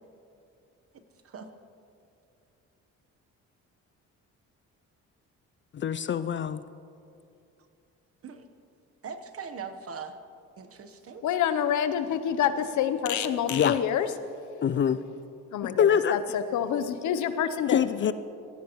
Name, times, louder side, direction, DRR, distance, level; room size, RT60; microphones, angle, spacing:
voice 1, 5.7-6.6 13.5-13.8 14.6-15.0 15.6-16.2 17.7-18.1, left 8 dB, 40° left, 13 dB, 0.4 m, -24 dB
voice 2, 9.0-10.1 10.6-11.2, right 6 dB, 50° right, 9 dB, 1.1 m, -40 dB
voice 3, 11.2-14.1 15.5-17.8, left 9 dB, 75° left, 11 dB, 0.8 m, -27 dB
18.0 x 15.0 x 3.1 m, 2.6 s
cardioid pair, 90°, 30 cm